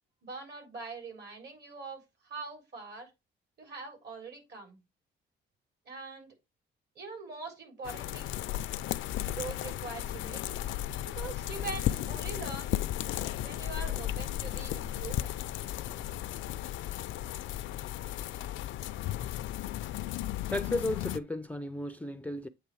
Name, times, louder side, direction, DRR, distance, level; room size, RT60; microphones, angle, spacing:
voice 1, 0.2-3.1 3.6-4.8 5.9-6.3 7.0-8.3 9.3-10.6 11.0-12.7 13.4-15.4, right 4 dB, 55° right, 3.8 m, -43 dB
sound 1, 7.8-21.2, left 13 dB, 75° left, 0.5 m, -35 dB
voice 2, 20.5-22.5, left 2 dB, 5° left, 0.4 m, -34 dB
8.5 x 3.3 x 4.7 m
cardioid pair, 90°, 20 cm